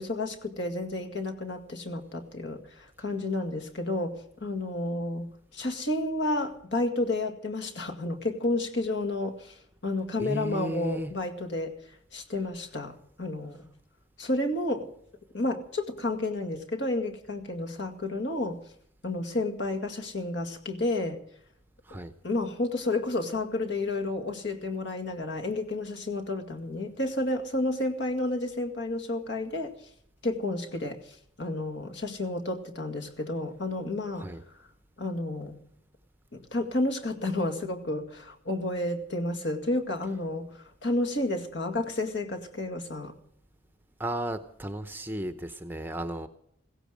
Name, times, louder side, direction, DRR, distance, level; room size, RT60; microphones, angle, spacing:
voice 1, 0.0-11.7 12.1-13.7 14.2-14.9 15.3-18.6 19.0-21.2 21.9-22.0 22.2-29.7 30.2-34.3 34.5-34.6 35.0-35.6 36.3-43.1, left 2 dB, 60° left, 2.0 m, -31 dB
voice 2, 10.2-11.1 21.9-22.1 34.2-34.4 44.0-46.3, right 1 dB, 10° right, 0.8 m, -34 dB
16.5 x 16.0 x 5.1 m
head